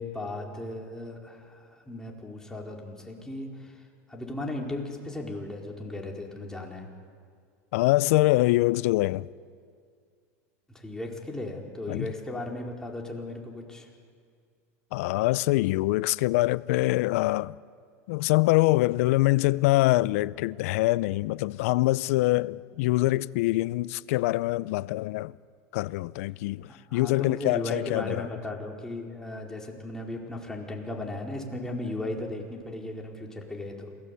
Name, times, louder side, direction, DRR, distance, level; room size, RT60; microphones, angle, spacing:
voice 1, 0.0-6.9 10.7-13.9 26.7-33.9, left 2 dB, 5° left, 4.5 m, -36 dB
voice 2, 7.7-9.3 11.9-12.1 14.9-17.6 18.1-25.3 25.7-28.3, left 19 dB, 70° left, 0.6 m, -24 dB
28.0 x 18.0 x 8.4 m
supercardioid pair, 110°, 8 cm